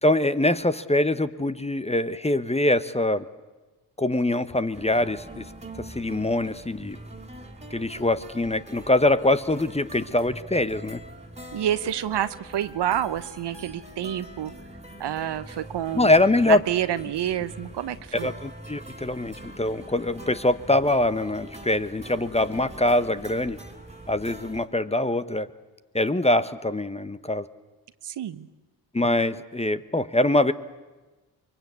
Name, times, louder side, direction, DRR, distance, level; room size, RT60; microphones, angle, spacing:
voice 1, 0.0-3.3 4.0-5.4 5.8-7.0 7.7-11.0 15.9-16.6 18.1-23.6 24.1-25.5 25.9-27.5 28.9-30.5, left 1 dB, 15° left, 13 dB, 1.0 m, -23 dB
sound 1, 4.7-24.7, right 1 dB, 15° right, 2.7 m, -43 dB
voice 2, 11.5-14.5 15.0-16.2 16.4-18.3 28.0-28.5, right 11 dB, 60° right, 14 dB, 1.1 m, -28 dB
24.0 x 22.0 x 8.3 m, 1.2 s
hypercardioid pair, 45°, 48 cm